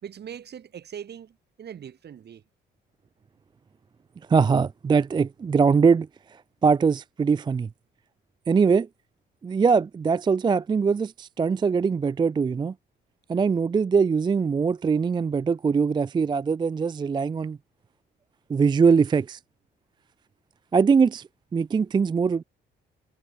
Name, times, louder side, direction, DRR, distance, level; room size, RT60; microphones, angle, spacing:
voice 1, 0.0-2.4, right 8 dB, 55° right, 3.0 m, -41 dB
voice 2, 4.3-6.1 6.6-7.7 8.5-8.9 9.4-12.7 13.3-17.6 18.5-19.4 20.7-22.4, right 5 dB, 25° right, 0.3 m, -22 dB
cardioid pair, 90°, 20 cm